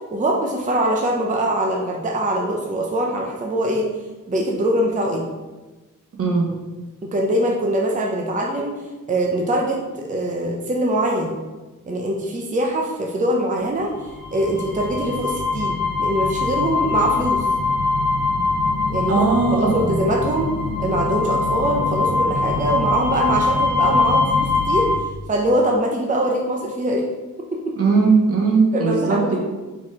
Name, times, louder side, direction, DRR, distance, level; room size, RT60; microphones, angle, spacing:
voice 1, 0.1-3.9 4.3-5.3 7.0-8.7 9.1-11.4 11.9-13.9 14.3-17.5 18.9-19.2 19.5-20.5 20.8-24.9 25.3-27.1 27.5-27.7 28.7-29.4, right 1 dB, 25° right, 0 dB, 0.6 m, -22 dB
voice 2, 6.1-6.5 19.1-20.1 27.8-29.4, right 4 dB, 45° right, -1 dB, 1.2 m, -19 dB
sound 1, 13.9-25.0, left 3 dB, 70° left, 1.3 m, -22 dB
4.7 x 4.2 x 4.8 m, 1.2 s
wide cardioid pair, 165°, 33 cm